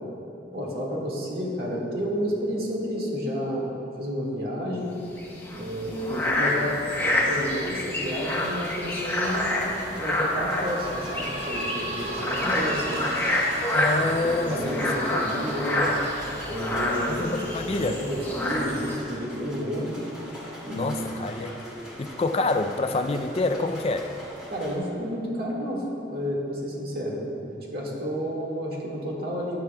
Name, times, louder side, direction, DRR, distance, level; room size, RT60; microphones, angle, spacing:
voice 1, 0.5-3.7 4.0-4.9 5.5-9.6 9.9-13.1 14.0-15.8 16.4-20.0 20.6-20.9 21.5-21.9 24.5-29.6, equal, 60° right, -3 dB, 1.8 m, -31 dB
sound 1, 5.1-19.0, left 1 dB, 10° left, 1.0 m, -28 dB
sound 2, 8.3-24.8, equal, 5° right, 2.3 m, -43 dB
sound 3, 10.2-23.3 23.9-24.0 24.3-24.4 25.2-25.3, right 1 dB, 40° right, 1.3 m, -41 dB
voice 2, 13.7-14.7 15.1-15.2 17.1-17.9 20.7-21.6 22.0-24.1, left 3 dB, 35° left, 7 dB, 0.4 m, -27 dB
12.0 x 10.5 x 2.3 m, 2.7 s
head